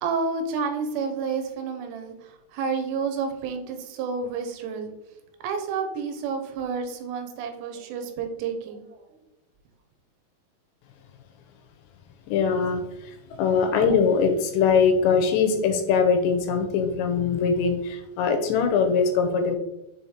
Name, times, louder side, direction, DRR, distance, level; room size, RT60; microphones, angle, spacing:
voice 1, 0.0-4.9 5.4-9.0, right 5 dB, 85° right, 5 dB, 2.9 m, -30 dB
voice 2, 12.3-19.6, left 5 dB, 85° left, 6 dB, 2.8 m, -22 dB
7.1 x 3.2 x 4.2 m, 0.92 s
omnidirectional pair, 5.1 m